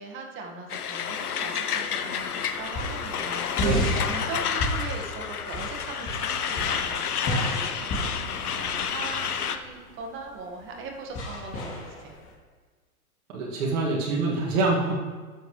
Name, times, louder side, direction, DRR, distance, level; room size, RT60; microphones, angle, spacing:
voice 1, 0.0-7.7 8.0-12.2, right 3 dB, 25° right, 2 dB, 1.7 m, -40 dB
Truck, 0.7-9.6, left 7 dB, 80° left, 0.8 m, -30 dB
sound 1, 2.4-12.3, left 1 dB, 30° left, 2.6 m, -33 dB
voice 2, 13.3-14.9, right 3 dB, 60° right, -4 dB, 2.2 m, -25 dB
12.5 x 7.4 x 3.2 m, 1.4 s
hypercardioid pair, 115°, 44 cm